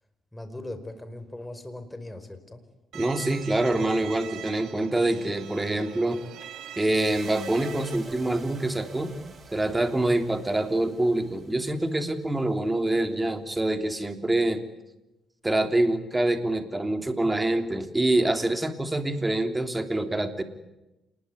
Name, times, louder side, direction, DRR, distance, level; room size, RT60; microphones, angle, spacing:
voice 1, 0.3-2.6, left 1 dB, 10° left, 9 dB, 5.0 m, -39 dB
voice 2, 2.9-6.2 6.8-9.1 9.5-14.6 15.4-20.4, right 1 dB, 15° right, 7 dB, 3.3 m, -25 dB
Bowed string instrument, 2.9-8.0, right 10 dB, 80° right, 2.2 m, -42 dB
sound 1, 6.9-13.3, right 4 dB, 40° right, 4.9 m, -48 dB
28.0 x 21.0 x 9.6 m, 0.94 s
cardioid pair, 90°, 0 cm